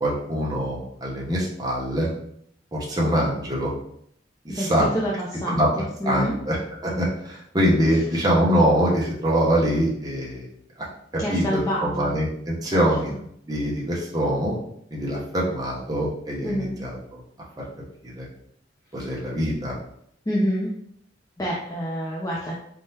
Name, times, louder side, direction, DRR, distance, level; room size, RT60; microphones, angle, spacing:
voice 1, 0.0-2.1 2.7-3.7 4.4-4.9 5.5-5.7 6.0-6.6 6.8-10.5 11.1-13.1 13.5-14.5 14.9-17.2 18.0-18.3 18.9-19.8, equal, 20° right, -5 dB, 0.8 m, -24 dB
voice 2, 4.5-5.1 5.4-6.3 11.2-12.1 12.7-12.8 16.4-16.8 20.3-20.7 21.4-22.5, equal, 20° left, -4 dB, 0.6 m, -27 dB
4.2 x 3.7 x 2.8 m, 0.70 s
head